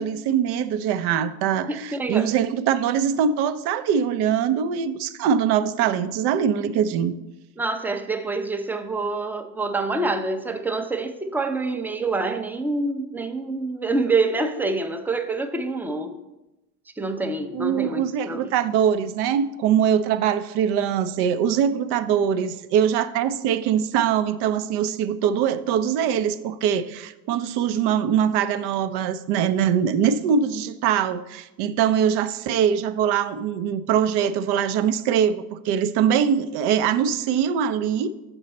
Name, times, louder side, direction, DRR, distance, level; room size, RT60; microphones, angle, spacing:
voice 1, 0.0-7.1 17.5-38.1, right 8 dB, 55° right, 12 dB, 0.6 m, -22 dB
voice 2, 1.7-2.3 7.6-16.2 17.0-18.5, right 3 dB, 5° right, 6 dB, 0.5 m, -26 dB
6.7 x 5.3 x 4.1 m, 0.97 s
hypercardioid pair, 60°, 47 cm